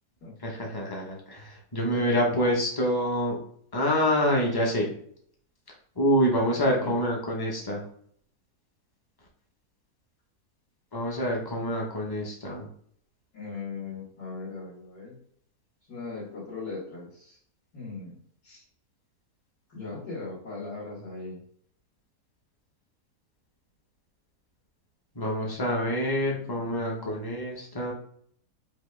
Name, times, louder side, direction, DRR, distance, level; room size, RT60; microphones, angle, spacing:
voice 1, 0.4-3.4 3.7-4.9 5.9-7.8 10.9-12.7 25.1-27.9, equal, 20° left, -2 dB, 0.7 m, -26 dB
voice 2, 1.9-2.4 6.6-7.0 13.3-15.2 15.9-17.4 17.7-18.2 18.4-18.6 19.7-21.4 26.2-27.1, left 3 dB, 75° left, -10 dB, 2.2 m, -39 dB
5.1 x 2.7 x 3.3 m, 0.63 s
omnidirectional pair, 1.7 m